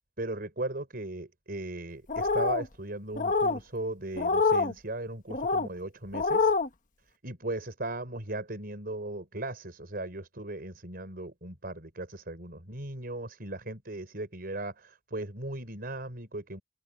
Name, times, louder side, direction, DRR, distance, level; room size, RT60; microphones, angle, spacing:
voice 1, 0.2-6.5 7.2-16.6, right 2 dB, 55° right, 5.0 m, -37 dB
sound 1, 2.1-2.7 3.2-3.6 4.2-4.7 5.3-5.7 6.1-6.7, left 4 dB, 45° left, 1.3 m, -26 dB
open air
head